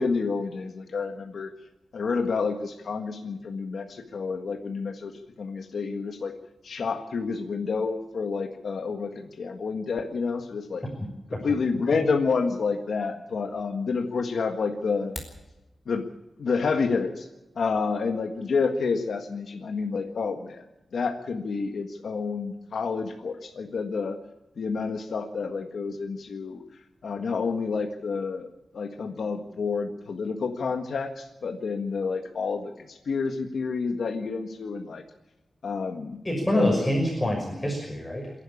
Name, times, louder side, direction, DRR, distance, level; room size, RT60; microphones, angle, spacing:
voice 1, 0.0-1.5 1.9-5.1 5.4-6.3 6.6-10.8 11.4-15.1 15.9-16.1 16.4-17.3 17.5-20.6 20.9-24.2 24.6-26.6 27.0-35.0 35.6-36.2 36.5-36.9, left 4 dB, 85° left, 4 dB, 1.7 m, -29 dB
sound 1, 14.9-15.5, equal, ahead, 4.9 m, -40 dB
voice 2, 36.2-38.3, left 1 dB, 15° left, 0 dB, 6.0 m, -26 dB
27.5 x 11.5 x 8.6 m, 1.0 s
wide cardioid pair, 85°, 0 cm